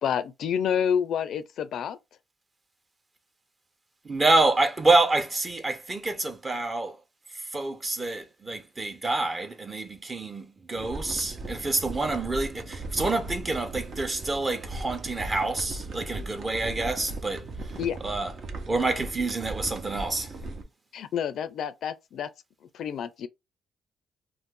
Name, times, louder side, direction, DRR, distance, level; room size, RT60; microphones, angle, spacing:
voice 1, 0.0-2.0 17.8-18.0 20.9-22.3 22.7-23.3, left 8 dB, 70° left, 0.4 m, -28 dB
voice 2, 4.0-6.9 7.5-17.4 18.0-18.3 18.7-20.3, right 2 dB, 30° right, 0.8 m, -27 dB
sound 1, 10.7-20.6, right 2 dB, 60° right, 0.8 m, -38 dB
2.6 x 2.4 x 3.6 m
cardioid pair, 90°, 0 cm